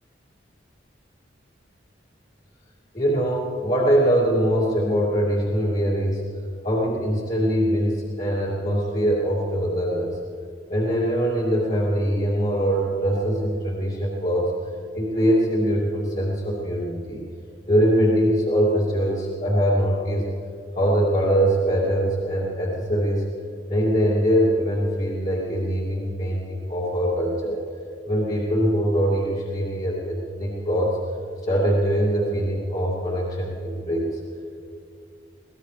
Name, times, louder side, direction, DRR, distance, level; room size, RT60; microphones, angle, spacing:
voice 1, 2.9-6.2 6.6-10.2 10.7-14.5 14.9-17.2 17.7-20.2 20.7-23.3 23.7-27.6 28.1-31.0 31.4-34.2, equal, 40° left, -6 dB, 2.7 m, -22 dB
23.5 x 17.5 x 3.4 m, 2.6 s
head